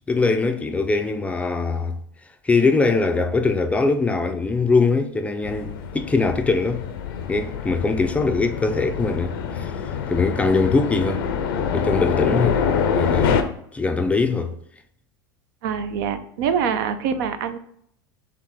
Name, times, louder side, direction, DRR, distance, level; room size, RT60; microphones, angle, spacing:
voice 1, 0.1-2.0 2.4-6.8 7.3-9.8 10.1-11.3 11.7-12.6 12.9-14.5, left 3 dB, 10° left, 0.4 m, -22 dB
sound 1, 5.4-13.4, left 7 dB, 75° left, 0.5 m, -25 dB
voice 2, 15.6-17.6, right 7 dB, 70° right, 0.5 m, -24 dB
3.4 x 2.9 x 3.7 m
hypercardioid pair, 100°, 12 cm